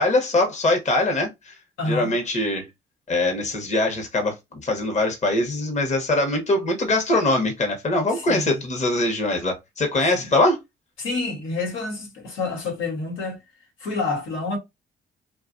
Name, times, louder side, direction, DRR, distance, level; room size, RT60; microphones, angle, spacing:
voice 1, 0.0-1.6 1.8-2.7 3.1-10.6, left 2 dB, 35° left, 0.9 m, -22 dB
voice 2, 1.8-2.1 8.1-8.6 10.1-10.2 11.0-13.4 13.8-14.6, left 3 dB, 80° left, 1.1 m, -28 dB
2.8 x 2.3 x 2.5 m
cardioid pair, 90°, 20 cm